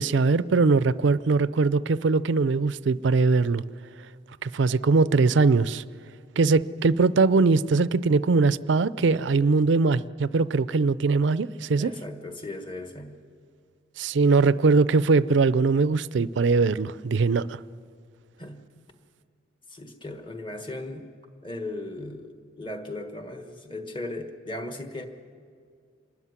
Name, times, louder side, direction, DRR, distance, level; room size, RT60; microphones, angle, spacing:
voice 1, 0.0-3.6 4.4-5.8 6.4-11.9 14.0-17.6, right 4 dB, 70° right, 0.5 m, -21 dB
voice 2, 11.8-13.2 18.4-18.8 19.7-21.1 21.4-25.1, left 2 dB, 25° left, 1.4 m, -37 dB
26.0 x 13.0 x 9.6 m
head